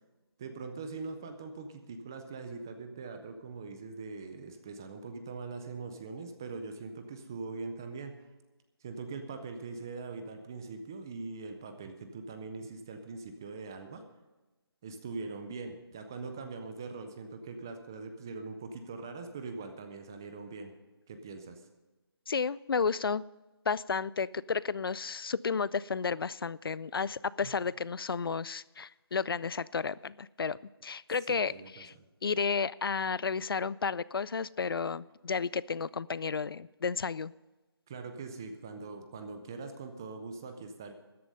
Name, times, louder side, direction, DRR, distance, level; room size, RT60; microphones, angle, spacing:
voice 1, 0.4-8.1 8.8-14.0 14.8-20.7 21.1-21.6 27.4-27.6 31.3-31.8 37.9-40.9, right 4 dB, 10° right, 7 dB, 0.4 m, -42 dB
voice 2, 22.3-23.2 23.7-31.9 32.2-37.3, left 5 dB, 60° left, 21 dB, 0.4 m, -32 dB
13.5 x 11.0 x 5.3 m, 1.1 s
figure-of-eight pair, 165°, 13 cm